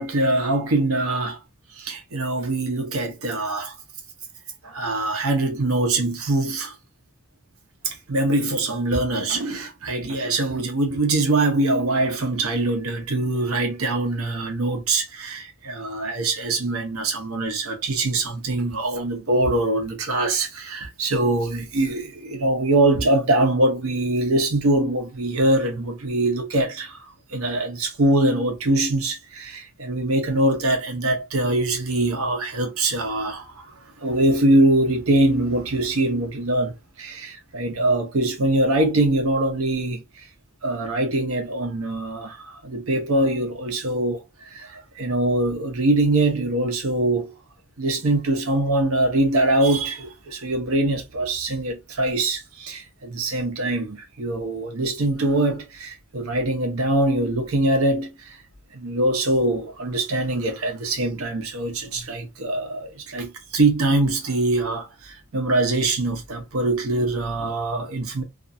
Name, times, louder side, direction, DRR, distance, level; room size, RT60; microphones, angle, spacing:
voice 1, 0.0-1.4 1.7-3.7 4.6-6.8 7.8-27.0 27.3-40.2 40.6-47.3 47.8-58.4 58.7-68.2, right 2 dB, 75° right, 0.8 m, -23 dB
2.5 x 2.4 x 2.6 m
head